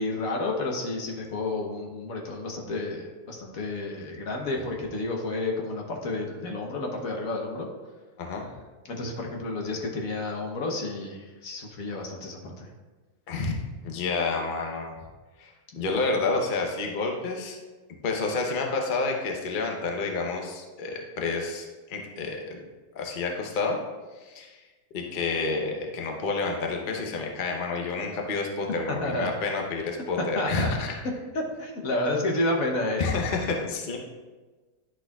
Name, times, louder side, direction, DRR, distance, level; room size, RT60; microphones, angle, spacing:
voice 1, 0.0-7.7 8.9-12.7 28.9-29.3 30.3-30.8 31.3-33.0, left 2 dB, 65° left, 1 dB, 1.4 m, -30 dB
voice 2, 8.2-8.5 13.3-13.6 13.8-15.0 15.4-17.6 18.0-22.6 22.9-23.8 24.2-24.6 24.9-30.9 33.0-34.0, left 3 dB, 40° left, 1 dB, 0.8 m, -29 dB
10.5 x 6.1 x 2.3 m, 1.3 s
omnidirectional pair, 1.6 m